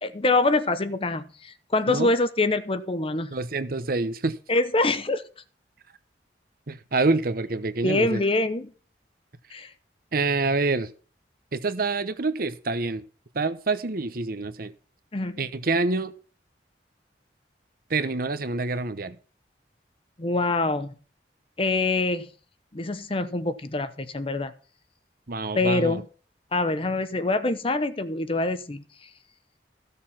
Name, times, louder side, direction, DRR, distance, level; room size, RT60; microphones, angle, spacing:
voice 1, 0.0-3.3 4.5-5.2 7.8-8.7 9.5-9.7 15.1-15.4 20.2-20.9 21.6-22.3 22.7-24.5 25.5-26.0 26.5-28.8, left 2 dB, 30° left, 0.9 m, -25 dB
voice 2, 3.3-4.4 6.7-8.2 10.1-10.9 11.5-13.0 13.3-14.7 15.4-16.1 17.9-19.2 25.3-26.0, right 3 dB, 55° right, 1.0 m, -26 dB
15.0 x 6.8 x 5.9 m
head